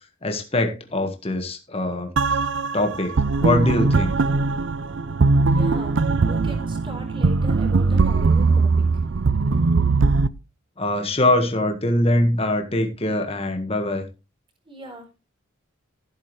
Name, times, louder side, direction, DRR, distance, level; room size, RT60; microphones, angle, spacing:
voice 1, 0.2-2.1 2.7-3.1 3.4-4.1 10.8-14.0, left 1 dB, 30° left, 1.6 m, -22 dB
sound 1, 2.2-10.3, right 4 dB, 65° right, 0.5 m, -20 dB
voice 2, 5.5-6.0 6.3-8.9 14.7-15.2, right 1 dB, 25° right, 4.1 m, -39 dB
15.0 x 8.1 x 3.2 m
head